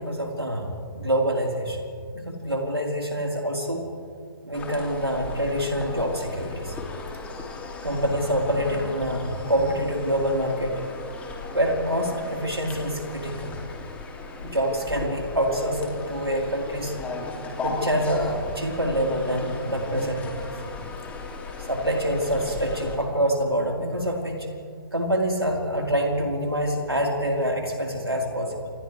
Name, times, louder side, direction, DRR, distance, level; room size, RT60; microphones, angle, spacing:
voice 1, 0.0-1.8 2.1-3.8 4.4-6.8 7.8-10.8 11.5-13.6 14.4-16.9 17.6-20.4 21.6-24.5 24.9-28.7, equal, 85° right, 0 dB, 4.2 m, -26 dB
sound 1, 4.5-22.9, left 3 dB, 10° left, 2.7 m, -37 dB
29.5 x 27.5 x 3.4 m, 2.1 s
figure-of-eight pair, 135°, 13 cm